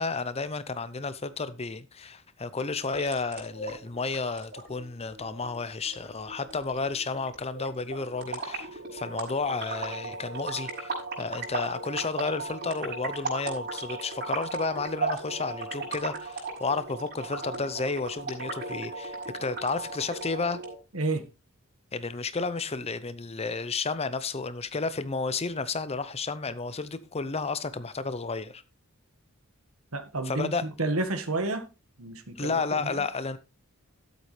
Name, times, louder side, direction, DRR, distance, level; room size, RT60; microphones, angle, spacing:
voice 1, 0.0-10.9 11.2-20.6 21.9-28.6 30.3-30.6 32.4-33.4, left 4 dB, 30° left, 0.7 m, -32 dB
sound 1, 2.7-20.7, right 3 dB, 50° right, 5.5 m, -37 dB
voice 2, 20.9-21.2 29.9-30.5 30.8-31.7 32.0-33.0, right 2 dB, 70° right, 1.7 m, -30 dB
12.5 x 8.1 x 3.3 m
head